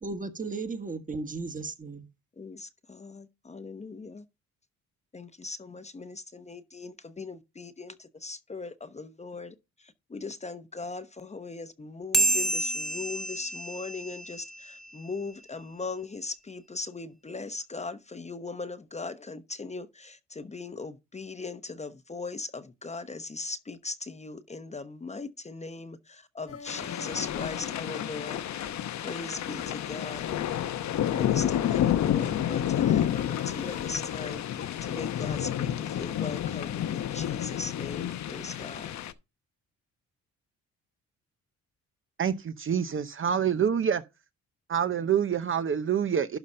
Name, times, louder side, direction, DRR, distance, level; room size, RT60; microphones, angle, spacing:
voice 1, 0.0-2.1, right 3 dB, 25° right, 1.6 m, -35 dB
voice 2, 2.4-4.2 5.1-28.4 29.0-30.6 31.1-39.0, left 3 dB, 20° left, 0.9 m, -39 dB
sound 1, 12.1-15.0, right 1 dB, ahead, 1.2 m, -29 dB
sound 2, 26.5-36.9, left 7 dB, 50° left, 1.5 m, -46 dB
sound 3, 26.7-39.1, left 11 dB, 65° left, 0.9 m, -30 dB
voice 3, 42.2-44.0 44.7-46.4, right 8 dB, 45° right, 0.8 m, -26 dB
12.0 x 4.0 x 5.5 m
cardioid pair, 90°, 30 cm